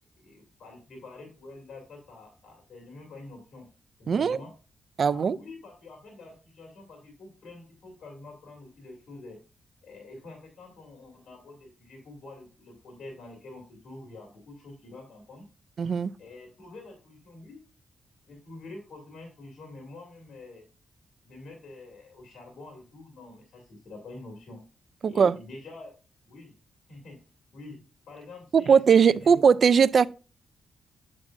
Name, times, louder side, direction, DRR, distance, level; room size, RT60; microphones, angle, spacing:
voice 1, 0.2-3.7 4.0-4.5 5.0-9.4 9.8-15.5 16.2-17.6 18.3-20.6 21.2-24.6 25.0-25.9 26.3-26.5 26.9-27.2 27.5-29.3, left 2 dB, 70° left, 2.5 m, -46 dB
voice 2, 4.1-4.4 5.0-5.4 15.8-16.1 25.0-25.4 28.5-30.1, right 6 dB, 55° right, 0.3 m, -20 dB
7.5 x 7.5 x 2.5 m
cardioid pair, 105°, 0 cm